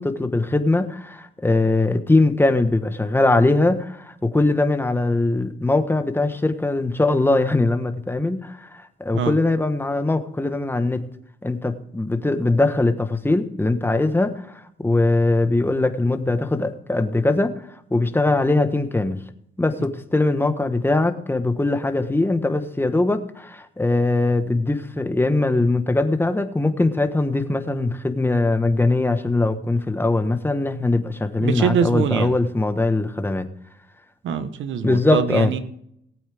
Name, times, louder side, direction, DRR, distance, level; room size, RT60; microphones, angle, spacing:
voice 1, 0.0-11.1 11.4-17.5 17.9-19.2 19.6-33.5 34.8-35.5, left 2 dB, 10° left, 8 dB, 1.3 m, -21 dB
voice 2, 31.4-32.3 34.2-35.6, right 7 dB, 75° right, 11 dB, 1.3 m, -23 dB
19.0 x 8.6 x 3.5 m, 0.72 s
cardioid pair, 90°, 20 cm